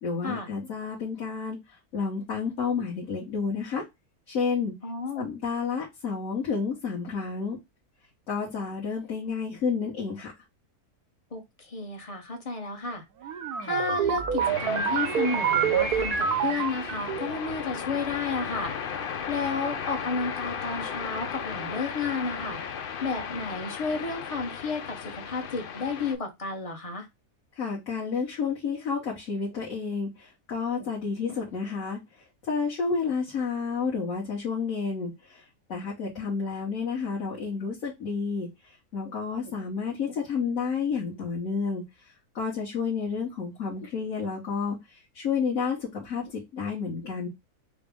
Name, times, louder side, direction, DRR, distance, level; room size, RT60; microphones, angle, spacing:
voice 1, 0.0-3.8 4.3-4.7 5.1-7.6 8.3-10.3 27.5-32.0 32.4-41.8 42.3-47.3, left 5 dB, 55° left, 1.4 m, -30 dB
voice 2, 4.8-5.3 11.3-13.0 13.6-18.7 19.3-22.6 23.0-27.1, left 4 dB, 30° left, 0.8 m, -32 dB
sound 1, 13.2-17.4, right 8 dB, 85° right, 1.2 m, -27 dB
sound 2, 14.4-26.1, left 7 dB, 85° left, 0.4 m, -36 dB
5.0 x 2.1 x 3.4 m
omnidirectional pair, 1.6 m